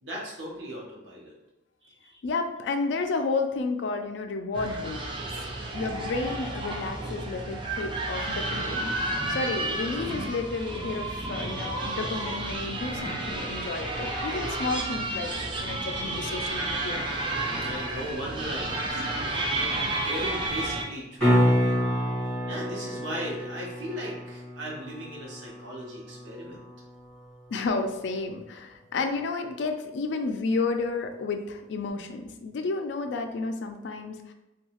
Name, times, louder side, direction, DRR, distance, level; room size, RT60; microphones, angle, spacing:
voice 1, 0.0-1.3 1.8-2.2 17.6-19.2 19.5-21.8 22.5-26.6, equal, 70° right, -3 dB, 0.8 m, -37 dB
voice 2, 2.2-5.1 5.4-8.9 9.3-15.3 15.6-17.1 18.9-19.2 27.5-34.3, left 3 dB, 65° left, 6 dB, 0.3 m, -31 dB
sound 1, 4.5-20.8, right 2 dB, 25° right, 0.4 m, -31 dB
sound 2, 21.2-27.2 31.9-32.0, equal, 5° left, 1.4 m, -28 dB
2.7 x 2.3 x 2.9 m, 1.0 s
head